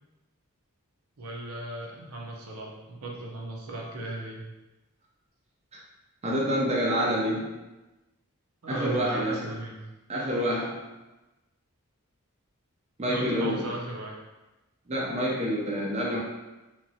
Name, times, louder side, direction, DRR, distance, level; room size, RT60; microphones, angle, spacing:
voice 1, 1.2-4.5 8.6-9.8 13.0-14.2, right 1 dB, 75° right, -2 dB, 0.6 m, -36 dB
voice 2, 6.2-7.5 8.7-9.5 10.1-10.8 13.0-13.6 14.9-16.2, equal, 30° right, -4 dB, 0.4 m, -27 dB
2.9 x 2.4 x 2.7 m, 1.0 s
head